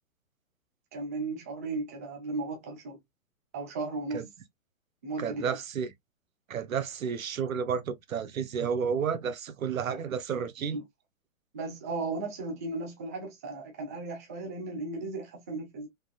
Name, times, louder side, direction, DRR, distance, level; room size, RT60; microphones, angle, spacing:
voice 1, 0.9-3.0 3.5-4.2 5.0-5.6 9.9-10.0 10.7-10.8 11.5-15.9, right 3 dB, 15° right, 0.3 m, -35 dB
voice 2, 5.2-5.9 6.5-10.8, right 7 dB, 85° right, 0.7 m, -31 dB
3.5 x 2.3 x 2.2 m
hypercardioid pair, 135°, 40 cm